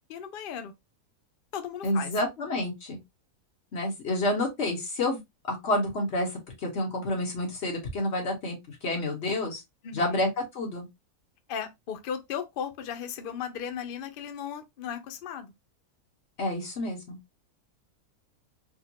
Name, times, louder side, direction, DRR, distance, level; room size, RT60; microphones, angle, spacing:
voice 1, 0.1-0.7 1.5-2.1 9.8-10.2 11.5-15.5, left 8 dB, 90° left, 0.4 m, -36 dB
voice 2, 1.8-3.0 3.7-5.2 5.4-6.3 6.6-9.6 9.9-10.3 10.5-10.9 16.4-17.2, left 1 dB, 45° left, 1.5 m, -29 dB
4.3 x 2.1 x 2.8 m
omnidirectional pair, 1.6 m